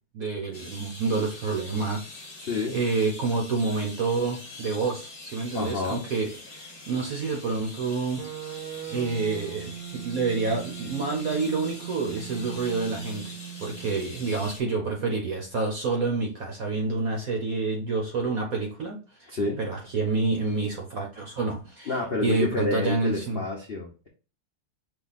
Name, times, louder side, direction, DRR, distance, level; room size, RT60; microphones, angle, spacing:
voice 1, 0.1-2.0 2.7-8.2 8.9-23.4, right 4 dB, 60° right, 0 dB, 0.9 m, -28 dB
sound 1, 0.5-14.6, left 2 dB, 30° left, 1.3 m, -44 dB
voice 2, 2.4-2.8 5.5-6.0 19.3-19.6 21.9-24.1, left 3 dB, 60° left, -2 dB, 0.6 m, -29 dB
sound 2, 8.2-14.2, right 11 dB, 85° right, 1.6 m, -40 dB
5.5 x 2.3 x 4.0 m, 0.36 s
omnidirectional pair, 2.3 m